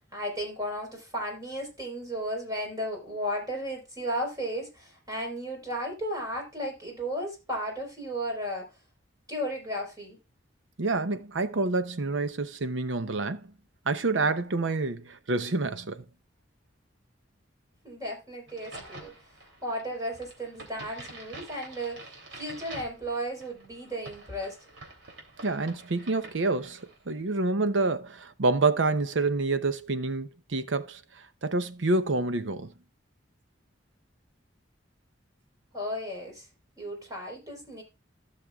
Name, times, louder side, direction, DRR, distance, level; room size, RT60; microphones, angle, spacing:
voice 1, 0.1-8.7 9.3-10.2 17.8-19.1 19.6-22.1 22.3-24.6 35.7-36.5 36.8-37.8, equal, 20° right, 4.1 m, -34 dB
voice 2, 10.8-13.5 13.9-16.0 25.4-31.0 31.4-32.7, right 3 dB, 75° right, 0.8 m, -28 dB
Crack, 18.5-27.0, right 2 dB, 90° right, 3.1 m, -47 dB
15.0 x 6.6 x 2.4 m
head